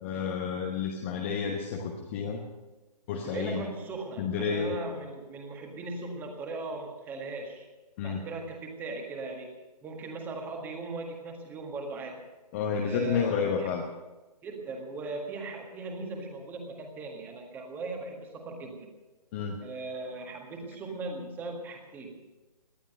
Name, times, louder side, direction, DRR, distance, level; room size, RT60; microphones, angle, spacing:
voice 1, 0.0-2.4 3.1-3.7 4.2-4.7 8.0-8.3 12.5-13.8 19.3-19.6, left 6 dB, 20° left, 2 dB, 1.0 m, -30 dB
voice 2, 3.2-7.7 8.0-9.5 9.8-12.2 12.8-13.7 14.4-18.9 19.6-22.2, right 3 dB, 10° right, 3 dB, 1.7 m, -39 dB
18.5 x 11.5 x 6.6 m, 1.2 s
figure-of-eight pair, 145°, 21 cm